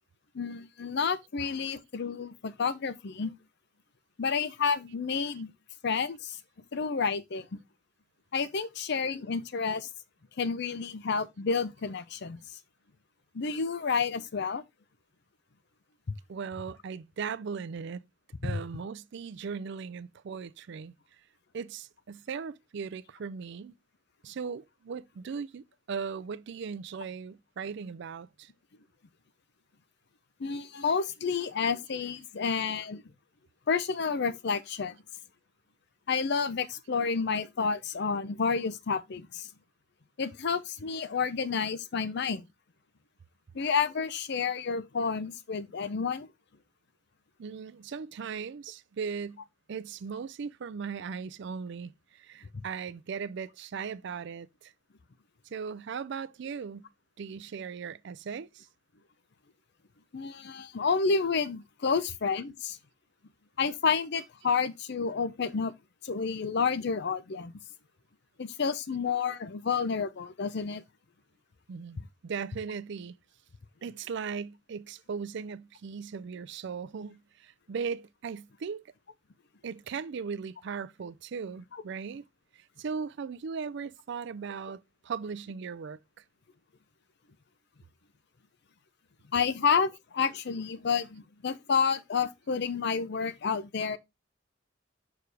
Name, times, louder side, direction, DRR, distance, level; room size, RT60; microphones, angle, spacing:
voice 1, 0.3-3.3 4.2-5.5 5.8-6.4 6.7-7.5 8.3-9.9 10.4-12.4 13.3-14.6 18.4-18.6 30.4-33.0 33.7-35.0 36.1-39.5 40.2-42.5 43.5-46.3 60.1-62.8 63.6-65.7 66.0-67.5 68.4-70.8 81.7-81.8 89.3-94.0, left 5 dB, 60° left, 0.6 m, -30 dB
voice 2, 16.3-18.0 18.4-20.9 21.5-23.7 24.2-28.5 47.4-49.4 49.7-54.7 55.5-56.9 57.2-58.7 71.7-73.1 73.8-78.8 79.6-82.2 82.5-86.0, right 6 dB, 65° right, 0.4 m, -38 dB
6.2 x 4.8 x 3.3 m
head